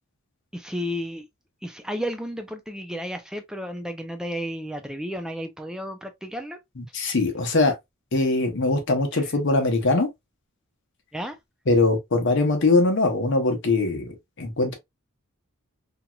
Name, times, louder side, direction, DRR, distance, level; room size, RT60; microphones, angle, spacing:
voice 1, 0.5-1.3 1.6-6.6 11.1-11.4, equal, 5° right, 0.4 m, -32 dB
voice 2, 6.8-7.7 8.1-10.1 11.7-14.1 14.4-14.7, left 3 dB, 55° left, 0.9 m, -22 dB
2.9 x 2.8 x 2.2 m
head